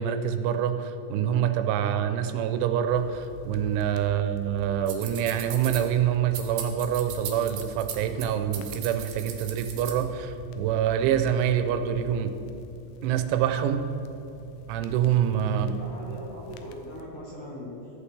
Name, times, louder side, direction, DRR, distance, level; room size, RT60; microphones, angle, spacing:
voice 1, 0.0-12.4 13.0-13.9 14.7-15.7, right 9 dB, 85° right, 8 dB, 3.0 m, -26 dB
sound 1, 2.9-17.0, left 5 dB, 85° left, 3.0 m, -46 dB
sound 2, 4.9-5.8 6.3-8.3 8.5-10.0, right 9 dB, 70° right, 2.6 m, -37 dB
voice 2, 15.5-18.0, left 1 dB, 55° left, -7 dB, 2.7 m, -40 dB
14.0 x 8.3 x 3.3 m, 2.8 s
omnidirectional pair, 5.4 m